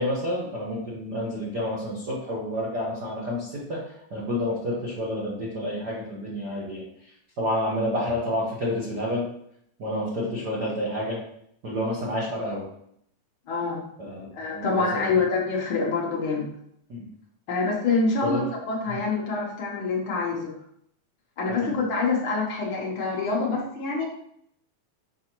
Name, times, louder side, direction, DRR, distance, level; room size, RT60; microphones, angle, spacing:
voice 1, 0.0-3.8 4.1-6.8 7.4-9.2 9.8-11.2 11.6-12.6 14.0-15.1 16.9-17.0 18.2-18.4 21.6-21.7, left 1 dB, 85° right, -5 dB, 0.9 m, -29 dB
voice 2, 13.5-13.8 14.3-16.5 17.5-20.5 21.4-24.1, left 4 dB, 60° left, -3 dB, 1.4 m, -26 dB
6.8 x 4.7 x 3.0 m, 0.71 s
omnidirectional pair, 3.8 m